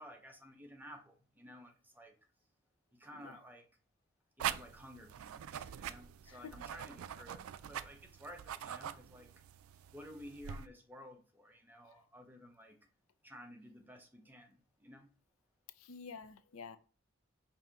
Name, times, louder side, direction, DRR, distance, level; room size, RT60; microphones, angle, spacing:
voice 1, 0.0-2.1 2.9-3.7 4.4-9.3 9.9-12.8 13.2-15.1, equal, 10° right, 3 dB, 0.7 m, -54 dB
sound 1, 4.4-10.7, right 9 dB, 90° right, 0.3 m, -44 dB
voice 2, 15.7-16.8, left 5 dB, 85° left, 11 dB, 0.5 m, -50 dB
5.5 x 2.7 x 3.5 m, 0.38 s
head